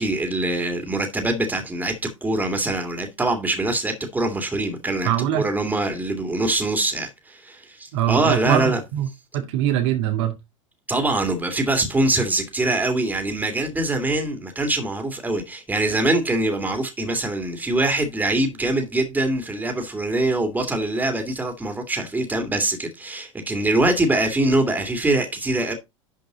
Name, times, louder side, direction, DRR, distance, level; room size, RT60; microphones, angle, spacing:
voice 1, 0.0-8.8 10.9-25.7, right 2 dB, 10° right, 2.8 m, -23 dB
voice 2, 5.0-5.4 7.9-9.1 9.3-10.3, right 11 dB, 55° right, 2.1 m, -22 dB
11.5 x 5.2 x 3.9 m
figure-of-eight pair, 80°, 17 cm